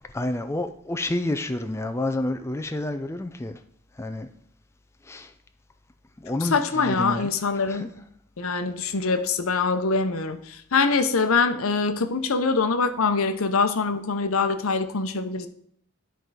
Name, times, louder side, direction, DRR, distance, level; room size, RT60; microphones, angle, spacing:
voice 1, 0.0-3.6 3.9-4.3 5.0-5.3 6.2-7.9, left 1 dB, 10° left, 0.4 m, -29 dB
voice 2, 6.5-7.9 8.4-10.4 10.7-15.5, left 4 dB, 70° left, 0.8 m, -24 dB
10.5 x 4.5 x 4.8 m
head